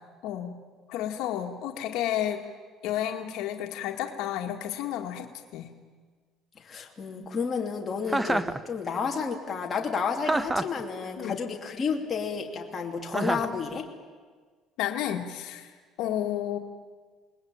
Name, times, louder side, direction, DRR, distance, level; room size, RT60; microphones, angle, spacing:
voice 1, 0.2-0.6 0.9-2.4 2.8-5.3 5.5-5.7 11.2-11.4 14.8-15.7 16.0-16.6, left 11 dB, 80° left, 3 dB, 2.0 m, -31 dB
voice 2, 6.6-13.9, left 5 dB, 25° left, 1 dB, 3.0 m, -31 dB
Chuckle chortle, 8.1-8.6 10.2-10.8 13.1-13.6, right 2 dB, 10° right, 0.8 m, -27 dB
28.0 x 20.5 x 8.9 m, 1.5 s
cardioid pair, 145°, 0 cm